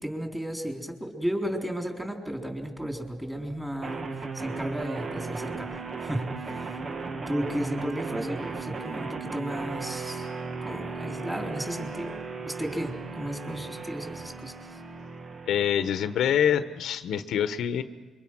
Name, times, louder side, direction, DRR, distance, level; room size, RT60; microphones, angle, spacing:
voice 1, 0.0-6.8 7.3-10.3 10.6-12.2 12.4-14.8, equal, 5° right, 3 dB, 4.2 m, -34 dB
sound 1, 3.8-16.8, right 4 dB, 45° right, 1.7 m, -36 dB
voice 2, 15.5-17.8, left 9 dB, 75° left, 11 dB, 1.2 m, -25 dB
26.5 x 24.0 x 6.3 m, 1.4 s
cardioid pair, 90°, 0 cm